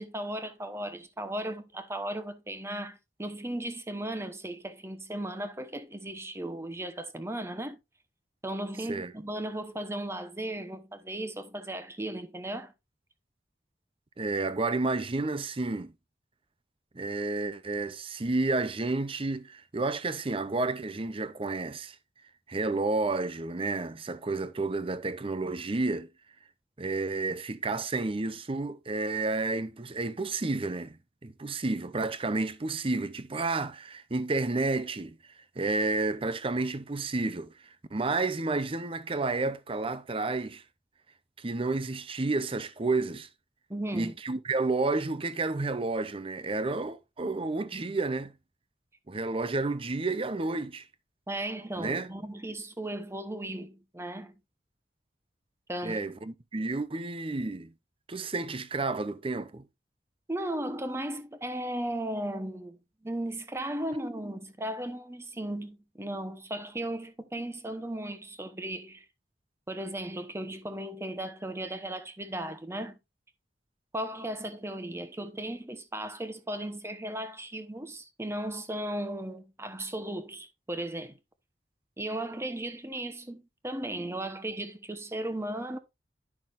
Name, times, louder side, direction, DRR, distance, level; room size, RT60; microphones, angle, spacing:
voice 1, 0.0-7.8 8.4-12.7 43.7-44.1 51.3-54.3 55.7-56.0 60.3-69.0 69.7-73.0 73.9-81.2 82.0-85.8, right 1 dB, 15° right, 1.0 m, -36 dB
voice 2, 14.2-15.9 16.9-22.0 22.5-26.1 26.8-31.0 31.2-35.2 35.6-37.5 37.9-40.6 41.4-43.3 43.9-48.3 49.1-50.8 51.8-52.1 55.8-57.7 58.1-59.6, right 3 dB, 30° right, 0.7 m, -31 dB
11.0 x 6.0 x 2.6 m
head